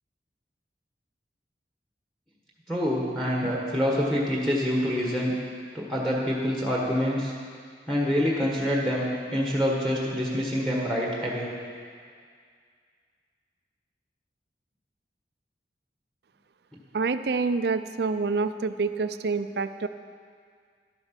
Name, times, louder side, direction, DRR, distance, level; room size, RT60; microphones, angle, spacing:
voice 1, 2.7-5.3 5.7-7.3 7.9-9.0 9.3-11.5, equal, ahead, -3 dB, 1.4 m, -26 dB
voice 2, 16.9-19.9, right 4 dB, 70° right, 11 dB, 0.4 m, -27 dB
12.0 x 8.8 x 5.9 m, 2.1 s
head